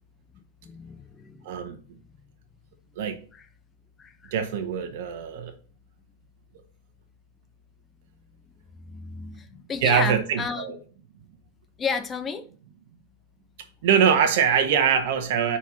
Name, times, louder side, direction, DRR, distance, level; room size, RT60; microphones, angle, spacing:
voice 1, 0.6-1.4 4.0-4.3 8.9-10.6 11.8-12.5, left 5 dB, 20° left, 0.8 m, -32 dB
voice 2, 1.4-1.8 2.9-3.2 4.3-5.5 9.8-10.8 13.8-15.6, right 7 dB, 55° right, 1.4 m, -23 dB
5.9 x 4.5 x 5.6 m
figure-of-eight pair, 90°, 0 cm